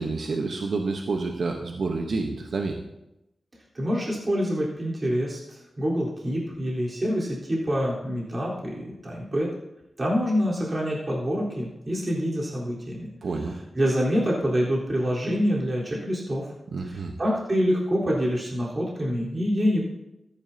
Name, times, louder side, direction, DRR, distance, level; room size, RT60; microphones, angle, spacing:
voice 1, 0.0-2.8 13.2-13.6 16.7-17.1, right 3 dB, 70° right, 3 dB, 1.1 m, -29 dB
voice 2, 3.7-9.5 10.0-13.1 13.8-16.5 16.8-19.9, equal, 35° right, -6 dB, 4.0 m, -26 dB
14.0 x 11.0 x 2.9 m, 0.90 s
cardioid pair, 65°, 0 cm